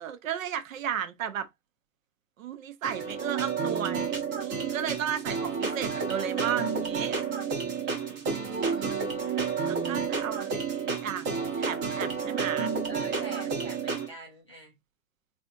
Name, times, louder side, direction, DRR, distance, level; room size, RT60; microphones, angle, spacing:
voice 1, 0.0-1.5 2.4-7.2 8.3-12.7, right 9 dB, 55° right, 0.7 m, -35 dB
sound 1, 2.8-14.1, right 5 dB, 20° right, 0.7 m, -30 dB
voice 2, 7.6-8.5 12.9-14.8, right 1 dB, 20° left, 0.3 m, -45 dB
3.4 x 2.5 x 2.5 m
hypercardioid pair, 130°, 47 cm